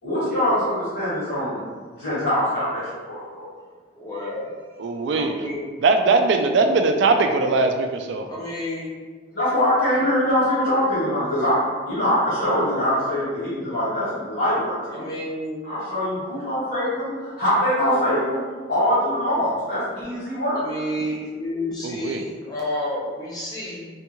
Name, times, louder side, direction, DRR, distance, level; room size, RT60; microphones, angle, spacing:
voice 1, 0.0-1.6 1.9-2.8 3.1-3.4 4.9-5.0 9.3-11.6 11.8-15.0 15.6-18.4 18.7-20.6, equal, 70° left, -13 dB, 1.4 m, -23 dB
voice 2, 3.9-4.5 5.1-5.6 8.2-8.9 14.9-15.6 20.5-23.9, left 1 dB, 20° left, -6 dB, 0.6 m, -30 dB
voice 3, 4.8-5.4 5.8-8.3 21.8-22.2, right 3 dB, 65° right, 5 dB, 0.3 m, -20 dB
3.4 x 2.3 x 3.0 m, 1.5 s
head